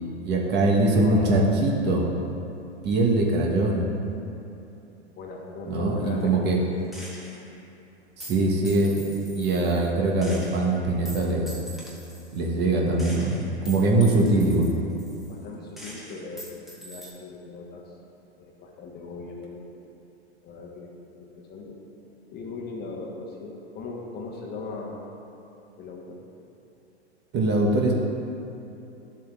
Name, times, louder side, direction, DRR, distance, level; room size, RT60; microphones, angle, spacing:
voice 1, 0.2-2.1 2.8-3.9 5.7-6.6 8.2-11.5 12.3-14.7 27.3-27.9, right 2 dB, 30° right, -1 dB, 1.1 m, -22 dB
voice 2, 0.9-1.4 5.2-6.9 15.3-17.8 18.4-19.7 20.4-21.8 22.3-25.0 25.8-26.2, left 3 dB, 30° left, -1 dB, 1.2 m, -38 dB
Gunshot gunfire, 6.9-7.5 8.2-9.9 10.2-12.4 13.0-15.5 15.8-17.1, equal, ahead, 1.1 m, -44 dB
12.0 x 7.2 x 2.4 m, 2.8 s
hypercardioid pair, 105°, 34 cm